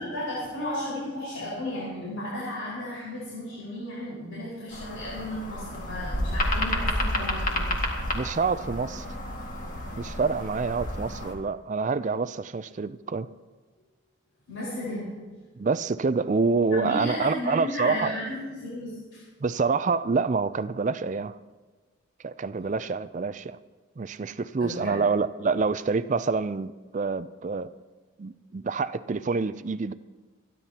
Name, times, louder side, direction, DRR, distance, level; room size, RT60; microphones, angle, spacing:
voice 1, 0.0-7.7 14.5-15.1 16.7-19.2 24.6-25.0 28.6-28.7, left 1 dB, 75° left, -8 dB, 5.0 m, -34 dB
sound 1, 4.7-11.3, left 1 dB, 40° left, 2.0 m, -30 dB
voice 2, 8.1-9.1 10.0-13.3 15.6-18.1 19.4-21.4 22.2-23.6 24.0-27.7 28.2-29.9, right 4 dB, 35° right, 14 dB, 0.4 m, -27 dB
27.5 x 11.0 x 2.9 m, 1.4 s
head